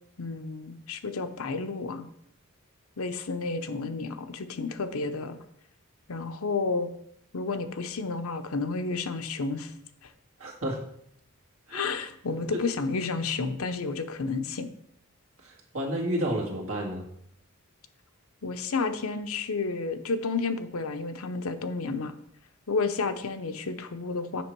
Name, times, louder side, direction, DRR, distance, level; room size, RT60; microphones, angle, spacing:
voice 1, 0.2-2.1 3.0-5.4 6.1-6.9 7.3-9.7 11.7-14.7 18.4-22.1 22.7-24.4, left 4 dB, 85° left, 8 dB, 0.7 m, -31 dB
voice 2, 10.4-10.8 11.7-11.9 15.4-17.1, right 1 dB, 75° right, -1 dB, 2.2 m, -31 dB
8.3 x 5.9 x 4.6 m, 0.71 s
head